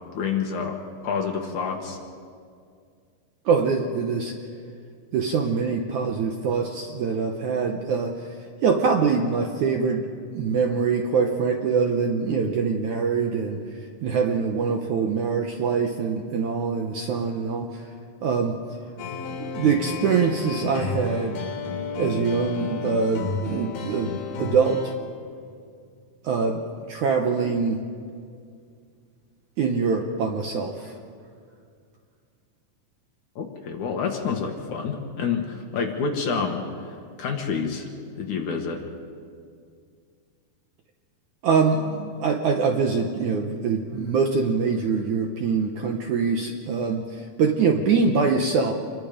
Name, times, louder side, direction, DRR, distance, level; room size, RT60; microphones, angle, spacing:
voice 1, 0.1-0.8 1.0-2.0 33.4-36.6 37.2-37.9 38.2-38.8, left 5 dB, 60° left, 2 dB, 2.5 m, -28 dB
voice 2, 3.5-4.3 5.1-8.3 8.6-10.1 10.3-13.6 14.0-17.8 18.2-18.6 19.4-21.4 22.0-24.1 24.4-24.8 26.2-26.6 26.9-27.8 29.6-30.9 41.4-48.7, right 5 dB, 70° right, 3 dB, 1.9 m, -24 dB
sound 1, 19.0-24.9, left 4 dB, 75° left, 3.9 m, -32 dB
27.5 x 22.0 x 5.1 m, 2.2 s
omnidirectional pair, 4.5 m